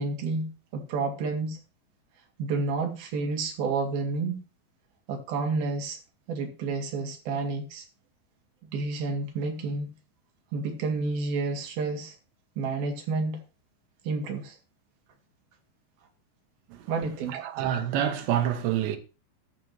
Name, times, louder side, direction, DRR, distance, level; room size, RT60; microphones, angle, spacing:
voice 1, 0.0-1.6 2.4-4.4 5.1-6.0 6.3-7.8 8.6-9.9 10.5-12.1 12.6-13.4 14.1-14.6 16.9-17.4, right 3 dB, 60° right, 3.6 m, -30 dB
voice 2, 17.3-19.0, right 10 dB, 75° right, 3.4 m, -27 dB
14.0 x 11.0 x 3.3 m
omnidirectional pair, 5.2 m